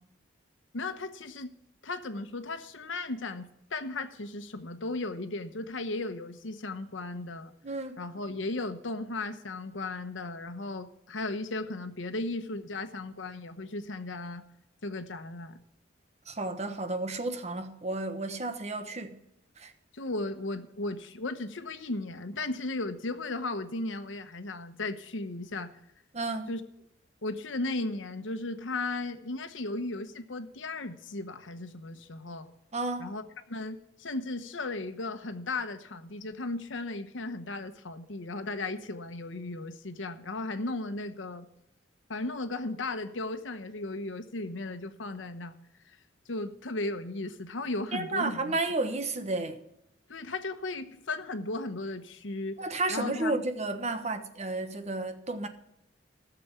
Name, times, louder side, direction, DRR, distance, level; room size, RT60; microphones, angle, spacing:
voice 1, 0.7-1.5 1.8-7.5 8.0-14.4 14.8-15.6 19.9-25.7 26.5-26.6 27.2-32.5 33.0-33.2 33.5-41.5 42.1-45.6 46.3-48.6 50.1-52.6 52.9-53.4, left 2 dB, 90° left, 1.0 m, -36 dB
voice 2, 7.6-8.0 16.3-19.2 19.6-19.7 26.1-26.5 32.7-33.2 47.9-49.6 52.6-55.5, right 2 dB, 35° right, 1.2 m, -32 dB
13.5 x 6.9 x 7.1 m
head